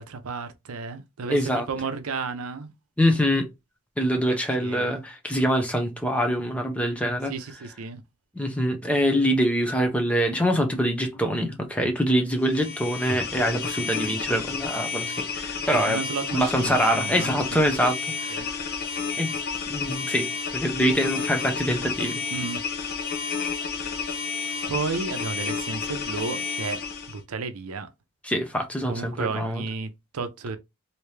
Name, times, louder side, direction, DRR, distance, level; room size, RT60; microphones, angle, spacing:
voice 1, 0.0-2.7 4.3-5.0 7.3-8.0 15.7-17.3 18.3-18.5 22.3-22.6 24.7-26.8 27.1-27.9 28.9-30.6, right 4 dB, 85° right, 0.6 m, -32 dB
voice 2, 1.3-1.7 3.0-3.5 4.0-7.3 8.4-16.0 16.3-18.0 18.2-18.6 19.2-19.4 19.7-22.2 28.2-29.6, equal, 5° left, 0.6 m, -24 dB
sound 1, 12.4-27.2, left 5 dB, 45° left, 0.7 m, -31 dB
3.3 x 2.8 x 3.1 m
head